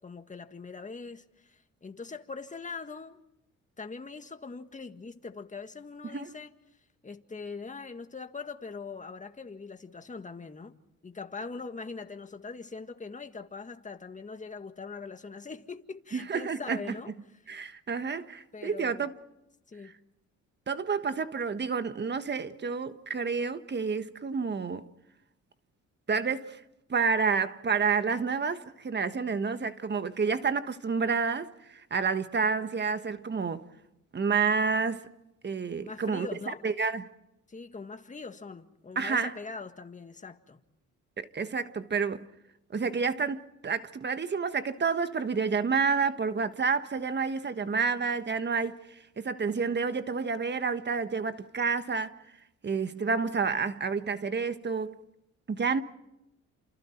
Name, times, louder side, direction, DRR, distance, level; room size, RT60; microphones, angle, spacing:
voice 1, 0.0-3.2 3.8-6.5 7.0-10.7 11.0-17.1 18.5-19.1 19.7-20.0 35.8-36.6 37.5-40.6, left 4 dB, 25° left, 1.9 m, -42 dB
voice 2, 16.1-16.8 17.5-19.1 20.7-24.9 26.1-26.6 26.9-33.6 34.1-35.1 35.4-36.3 36.6-37.1 38.9-39.3 41.2-42.3 42.7-52.1 52.6-55.0 55.5-55.8, right 5 dB, 35° right, 1.4 m, -29 dB
30.0 x 27.5 x 4.5 m
cardioid pair, 90°, 30 cm